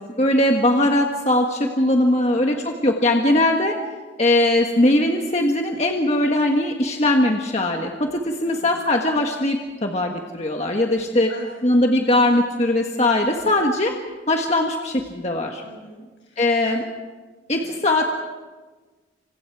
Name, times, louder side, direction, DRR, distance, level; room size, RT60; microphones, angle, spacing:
voice 1, 0.2-3.8 4.2-11.3 11.6-13.9 14.3-15.6 16.4-16.8 17.5-18.0, left 1 dB, 35° left, 2 dB, 1.5 m, -20 dB
voice 2, 8.4-8.8 11.3-11.7 15.6-16.8 17.5-17.8, equal, 75° left, 1 dB, 7.7 m, -43 dB
27.5 x 26.5 x 4.8 m, 1.3 s
head